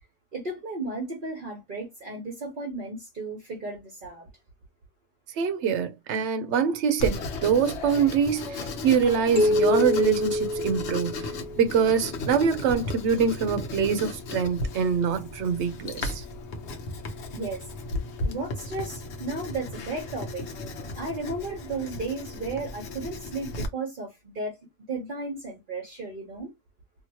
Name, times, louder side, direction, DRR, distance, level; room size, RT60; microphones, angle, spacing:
voice 1, 0.3-4.3 17.3-17.7 18.2-20.4 20.9-24.6 24.9-26.5, right 3 dB, 50° right, 1.1 m, -34 dB
voice 2, 5.4-11.3 11.6-16.2, right 6 dB, 85° right, 0.9 m, -24 dB
Writing, 7.0-23.7, left 2 dB, 75° left, 1.0 m, -35 dB
sound 1, 9.4-11.8, left 1 dB, 15° right, 1.1 m, -25 dB
2.9 x 2.7 x 2.8 m
omnidirectional pair, 1.1 m